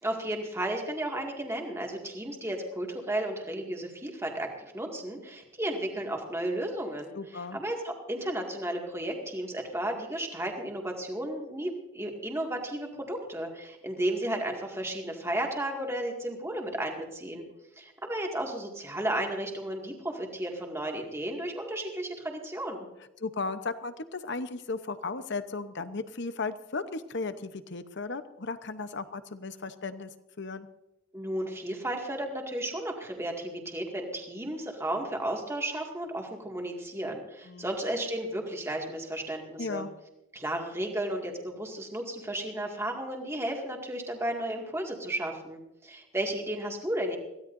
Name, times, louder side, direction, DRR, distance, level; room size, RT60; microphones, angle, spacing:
voice 1, 0.0-7.1 7.5-17.4 17.8-22.9 31.1-39.9 40.3-47.2, right 1 dB, 10° right, 1 dB, 2.1 m, -33 dB
voice 2, 7.1-7.6 23.2-30.1 30.4-30.7 37.5-37.7 39.6-39.9, left 3 dB, 55° left, 11 dB, 0.9 m, -35 dB
22.5 x 16.5 x 2.6 m, 0.94 s
head